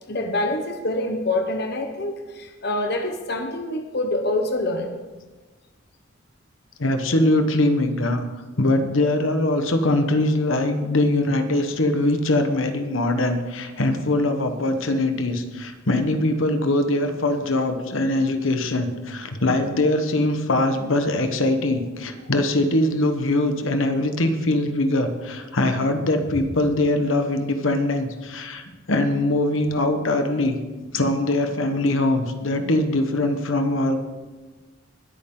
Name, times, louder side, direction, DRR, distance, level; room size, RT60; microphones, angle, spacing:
voice 1, 0.1-5.0, left 2 dB, 50° left, 4 dB, 1.1 m, -26 dB
voice 2, 6.8-8.2 8.6-30.6 30.9-34.0, left 1 dB, 75° left, 7 dB, 1.2 m, -22 dB
21.0 x 8.7 x 3.9 m, 1.2 s
head